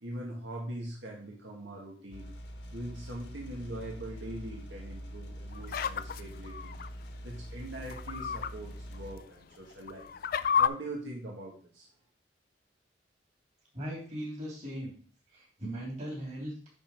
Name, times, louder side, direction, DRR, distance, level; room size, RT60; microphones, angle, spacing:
voice 1, 0.0-2.3 2.7-6.8 7.2-10.1 10.6-11.9, right 1 dB, 75° right, -2 dB, 1.6 m, -42 dB
sound 1, 2.1-9.1, equal, 65° left, 1.2 m, -44 dB
sound 2, 5.5-6.9 7.8-8.5 8.9-9.0 9.7-10.7, left 7 dB, 45° left, 0.3 m, -30 dB
voice 2, 13.7-14.9 15.3-16.7, right 1 dB, 35° right, -2 dB, 3.3 m, -38 dB
9.8 x 3.9 x 4.5 m, 0.43 s
head